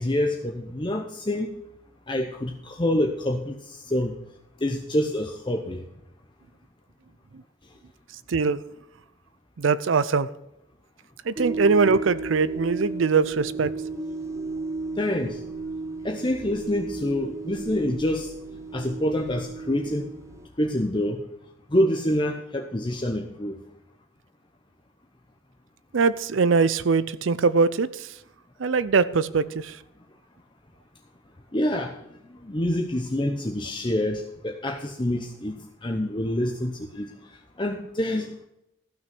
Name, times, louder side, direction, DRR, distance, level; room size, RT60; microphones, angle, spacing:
voice 1, 0.0-1.5 2.1-4.1 4.6-5.8 15.0-15.4 16.0-18.3 18.7-20.1 20.6-21.2 21.7-23.5 31.5-32.0 32.4-37.1 37.6-38.4, left 1 dB, 25° left, 0.8 m, -26 dB
voice 2, 8.3-8.6 9.6-10.3 11.3-13.7 25.9-28.1 28.6-29.8, right 4 dB, 75° right, 0.5 m, -22 dB
sound 1, 11.4-20.5, right 3 dB, 15° right, 0.6 m, -34 dB
14.5 x 6.2 x 6.0 m
head